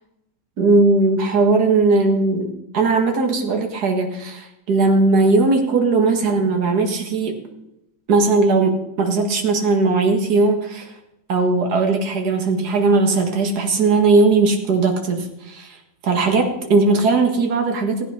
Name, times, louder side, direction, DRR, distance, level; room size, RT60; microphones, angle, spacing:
voice 1, 0.6-7.4 8.1-10.9 11.3-15.8 16.0-18.0, right 3 dB, 70° right, 3 dB, 2.2 m, -18 dB
16.0 x 9.3 x 5.7 m, 0.86 s
omnidirectional pair, 1.8 m